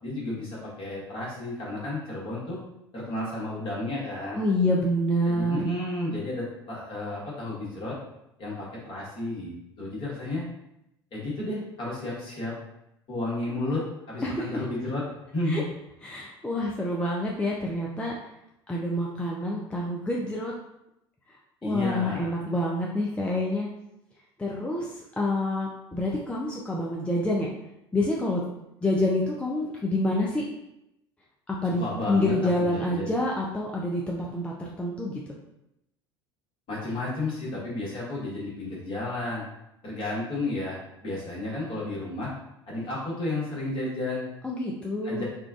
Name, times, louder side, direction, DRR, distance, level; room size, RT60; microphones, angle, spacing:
voice 1, 0.0-2.6 2.9-4.4 5.3-8.0 8.4-10.5 11.1-12.5 13.1-13.8 14.1-15.0 15.3-15.6 21.6-22.4 31.8-32.3 32.7-33.1 36.7-39.4 39.8-42.3 42.7-44.3 45.0-45.2, left 2 dB, 40° left, -5 dB, 1.3 m, -32 dB
voice 2, 4.3-5.7 14.2-14.6 15.5-15.6 16.0-18.1 18.7-20.5 21.6-23.7 24.4-27.5 27.9-28.4 28.8-30.4 31.5-35.2 44.4-45.2, left 1 dB, 10° left, -2 dB, 0.4 m, -27 dB
3.7 x 2.3 x 2.3 m, 0.85 s
figure-of-eight pair, 70°, 13 cm